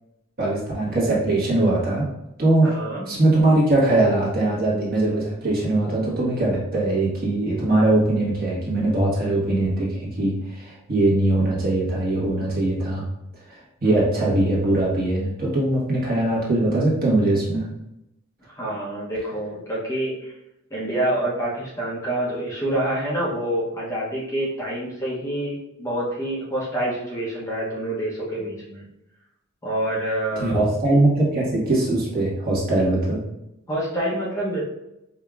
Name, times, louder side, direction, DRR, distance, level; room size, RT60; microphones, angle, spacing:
voice 1, 0.4-2.0 2.4-2.7 3.1-13.0 13.5-17.7 30.4-33.2, right 2 dB, 45° right, -5 dB, 1.3 m, -21 dB
voice 2, 2.6-3.1 13.8-14.1 14.3-14.4 18.6-20.3 20.7-28.8 29.6-30.6 33.7-34.6, right 1 dB, 15° left, -6 dB, 0.7 m, -27 dB
4.9 x 2.7 x 2.3 m, 0.86 s
head